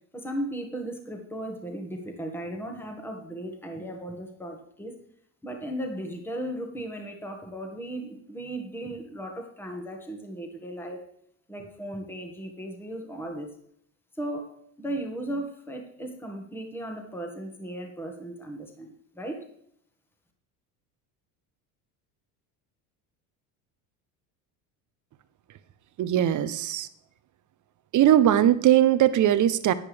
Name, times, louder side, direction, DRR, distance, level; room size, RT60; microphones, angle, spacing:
voice 1, 0.1-5.0 5.4-11.0 11.5-13.5 14.1-19.5, right 1 dB, 5° left, 3 dB, 1.7 m, -36 dB
voice 2, 26.0-26.9 27.9-29.7, right 11 dB, 40° right, 14 dB, 0.8 m, -20 dB
10.5 x 9.9 x 3.4 m, 0.69 s
supercardioid pair, 95°, 44 cm